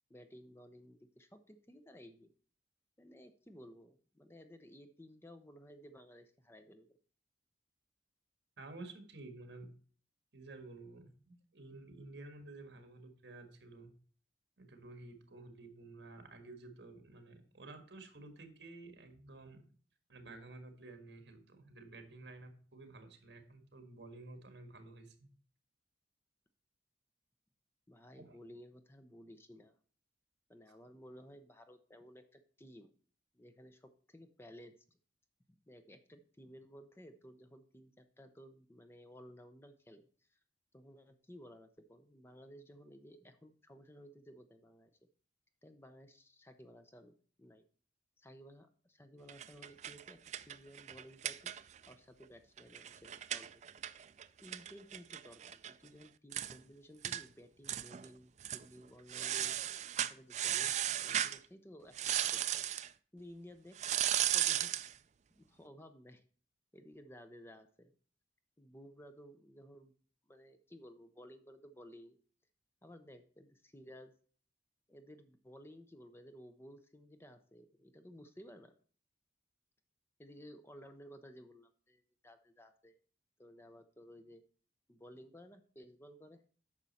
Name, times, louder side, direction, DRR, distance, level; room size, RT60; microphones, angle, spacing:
voice 1, 0.1-2.3 3.0-7.0 27.9-29.8 30.5-32.9 33.3-34.8 35.7-40.4 40.7-45.0 45.6-47.1 47.4-47.6 48.2-50.2 50.5-51.5 51.9-53.5 54.4-59.6 60.1-62.7 63.1-63.8 64.3-64.7 65.4-66.2 66.7-67.9 68.6-69.9 70.3-72.2 72.8-74.1 74.9-78.7 80.2-83.0 83.4-84.4 84.9-86.4, equal, 15° left, 8 dB, 0.7 m, -56 dB
voice 2, 8.6-9.7 10.3-13.9 14.6-19.6 20.1-25.3 28.1-28.4, right 2 dB, 70° right, 6 dB, 1.7 m, -52 dB
sound 1, 49.3-51.9 52.2-52.3 52.6-55.7 56.0-56.1 56.3-56.6 57.0-57.2 57.7-58.1 58.4-58.6 59.1-61.4 61.9-62.9 63.8-64.9, right 11 dB, 40° right, 0.4 m, -36 dB
9.3 x 6.1 x 4.2 m, 0.44 s
head